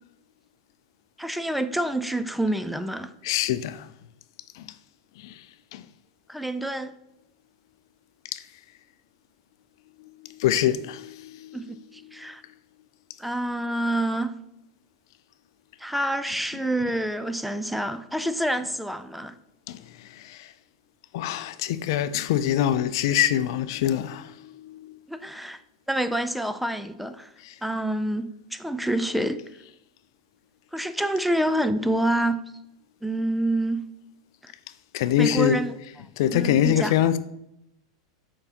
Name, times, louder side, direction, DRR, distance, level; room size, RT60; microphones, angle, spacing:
voice 1, 1.2-3.1 6.3-6.9 11.5-12.4 13.2-14.3 15.8-19.4 25.1-25.6 25.9-27.3 27.6-29.4 30.7-32.4 33.0-33.9 34.4-34.5 35.2-35.7 36.3-36.9, right 1 dB, ahead, 0.3 m, -27 dB
voice 2, 3.2-3.9 4.5-4.6 5.2-5.4 5.7-5.8 8.3-8.4 10.0-11.6 19.7-20.5 21.1-25.0 27.4-27.5 34.9-35.6 36.2-37.2, left 11 dB, 65° left, 0.4 m, -25 dB
6.8 x 5.4 x 2.8 m
hypercardioid pair, 110°, 3 cm